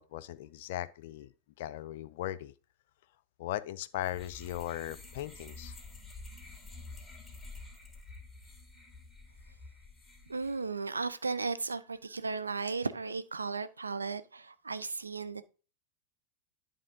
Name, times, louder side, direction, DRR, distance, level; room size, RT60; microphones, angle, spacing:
voice 1, 0.0-1.3 1.6-2.5 3.4-5.8, left 14 dB, 55° left, 0.4 m, -38 dB
sound 1, 4.0-10.7, left 3 dB, 5° left, 2.1 m, -49 dB
voice 2, 10.3-15.4, right 4 dB, 75° right, 0.5 m, -35 dB
10.5 x 3.7 x 3.7 m
figure-of-eight pair, 90°, 0 cm